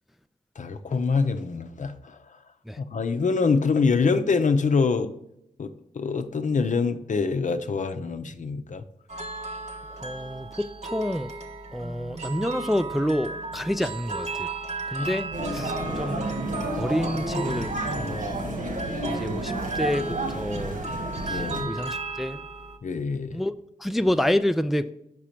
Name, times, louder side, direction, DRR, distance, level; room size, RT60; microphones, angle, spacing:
voice 1, 0.6-2.2 2.8-5.1 5.6-8.8 15.0-15.2 15.5-15.7 21.2-21.8 22.8-23.4, left 4 dB, 55° left, 9 dB, 0.7 m, -25 dB
sound 1, 9.1-22.8, right 3 dB, 45° right, 1.1 m, -35 dB
voice 2, 10.0-11.3 11.7-14.5 14.9-16.3 16.8-18.4 19.1-20.8 21.2-22.4 23.3-23.5 23.8-24.9, left 1 dB, ahead, 9 dB, 0.4 m, -28 dB
sound 2, 15.3-21.6, right 1 dB, 65° right, 2.0 m, -30 dB
6.1 x 5.0 x 4.4 m, 0.81 s
supercardioid pair, 40°, 15 cm